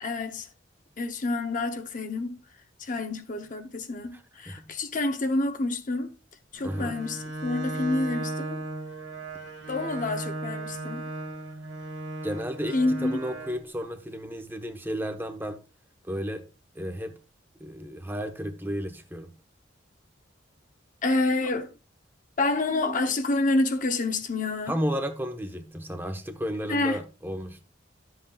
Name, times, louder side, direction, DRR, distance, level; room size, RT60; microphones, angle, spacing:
voice 1, 0.0-0.5 1.0-2.4 2.8-6.1 6.5-8.6 9.7-11.0 12.7-13.2 21.0-21.7 22.4-24.8 26.7-27.0, left 2 dB, 40° left, 0.8 m, -28 dB
voice 2, 4.1-4.7 6.6-7.0 12.2-15.6 16.0-16.4 16.7-17.1 17.6-19.3 24.7-27.6, equal, 10° right, 0.9 m, -33 dB
Bowed string instrument, 6.6-13.6, right 2 dB, 85° right, 1.5 m, -36 dB
12.0 x 7.7 x 2.3 m
head